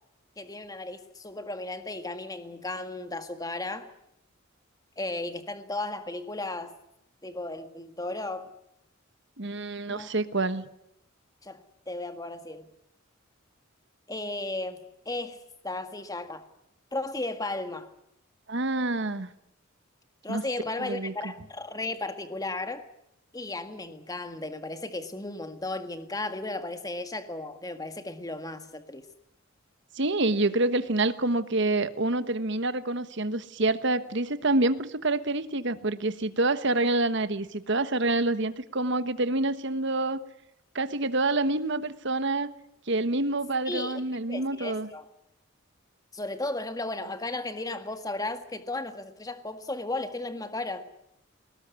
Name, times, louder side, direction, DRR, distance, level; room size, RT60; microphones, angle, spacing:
voice 1, 0.4-3.9 5.0-6.7 7.2-8.5 9.9-10.1 11.4-11.6 11.9-12.6 14.1-15.4 15.6-16.5 16.9-17.9 20.2-22.8 23.3-29.1 43.6-44.0 44.3-45.1 46.1-50.9, left 2 dB, 15° left, 9 dB, 1.7 m, -35 dB
voice 2, 9.4-10.6 18.5-19.3 20.3-20.4 20.8-21.1 29.9-40.2 40.7-42.5 42.9-44.9, right 2 dB, 60° right, 12 dB, 1.3 m, -27 dB
21.0 x 19.0 x 9.6 m, 0.81 s
head